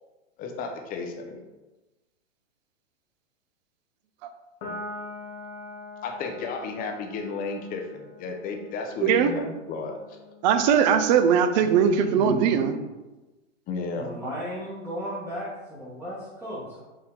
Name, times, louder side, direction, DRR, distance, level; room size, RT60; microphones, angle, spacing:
voice 1, 0.4-1.4 6.0-10.2 13.7-14.1, left 4 dB, 25° left, 3 dB, 0.6 m, -33 dB
Piano, 4.6-11.3, left 2 dB, 50° left, 1.1 m, -43 dB
voice 2, 9.0-9.3 10.4-12.7, right 7 dB, 40° right, 9 dB, 0.4 m, -20 dB
voice 3, 11.5-12.8 13.9-16.8, left 1 dB, 5° right, -10 dB, 1.0 m, -35 dB
4.6 x 2.7 x 3.7 m, 1.1 s
hypercardioid pair, 120°, 37 cm